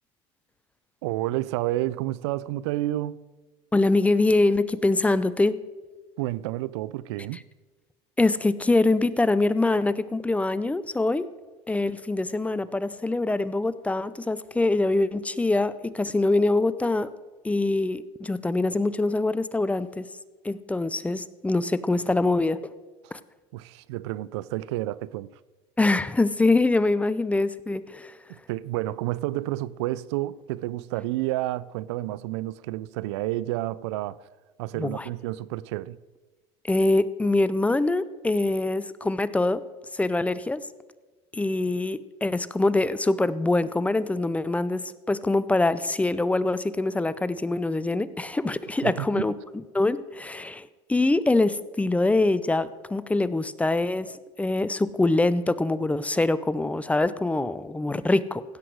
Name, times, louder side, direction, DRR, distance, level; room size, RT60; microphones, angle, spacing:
voice 1, 1.0-3.2 6.2-7.4 23.5-25.3 28.3-34.3 34.6-36.0 48.8-49.2, right 16 dB, 85° right, 0.4 m, -30 dB
voice 2, 3.7-5.6 8.2-11.3 11.7-17.1 17.4-20.1 20.4-22.7 23.1-23.2 25.8-28.2 34.8-35.1 36.7-39.6 39.9-40.6 41.3-49.3 49.7-58.4, left 2 dB, 10° left, 0.5 m, -24 dB
16.0 x 7.9 x 4.7 m
supercardioid pair, 100°, 14 cm